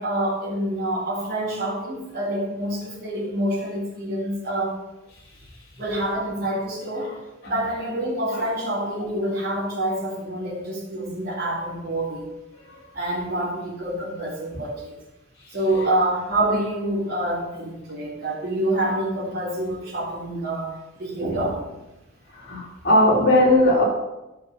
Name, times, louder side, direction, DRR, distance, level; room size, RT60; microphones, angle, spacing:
voice 1, 0.0-4.8 5.8-7.1 7.4-12.3 12.9-14.9 15.5-21.8, right 1 dB, 50° right, -4 dB, 3.7 m, -27 dB
voice 2, 22.4-23.8, left 1 dB, 55° left, -5 dB, 3.5 m, -18 dB
13.0 x 6.0 x 5.7 m, 1.0 s
head